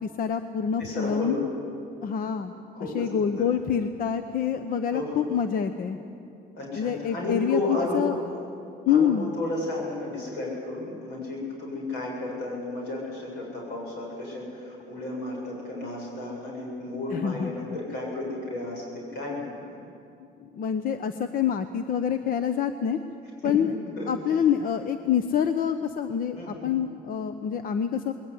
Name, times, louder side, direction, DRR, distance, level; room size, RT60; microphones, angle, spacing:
voice 1, 0.0-1.4 2.0-2.5 2.8-6.0 6.7-8.2 8.9-9.4 17.1-17.7 20.5-23.0 23.4-23.7 24.1-28.1, left 8 dB, 55° left, 10 dB, 0.9 m, -26 dB
voice 2, 0.8-1.4 2.7-3.5 4.9-5.2 6.6-8.2 8.9-19.6 23.4-23.5 24.0-24.1 26.4-26.7, left 2 dB, 85° left, -2 dB, 7.8 m, -33 dB
20.5 x 18.0 x 9.7 m, 2.6 s
cardioid pair, 120°, 17 cm